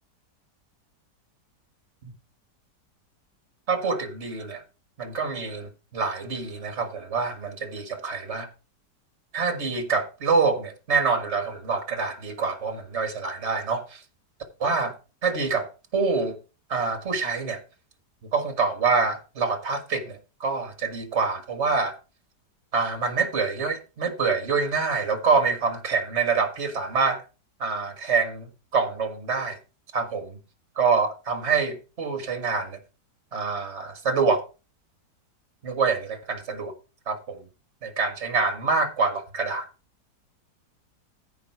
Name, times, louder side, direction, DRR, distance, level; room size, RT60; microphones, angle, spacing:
voice 1, 3.7-4.6 5.0-8.5 9.3-14.0 14.6-14.9 15.2-16.4 16.7-17.6 18.3-22.0 22.7-27.2 27.6-29.6 29.9-30.4 30.8-32.8 33.3-34.4 35.6-36.7 37.1-37.4 37.8-39.7, right 4 dB, 40° right, 2.0 m, -26 dB
14.5 x 4.9 x 4.7 m
omnidirectional pair, 1.9 m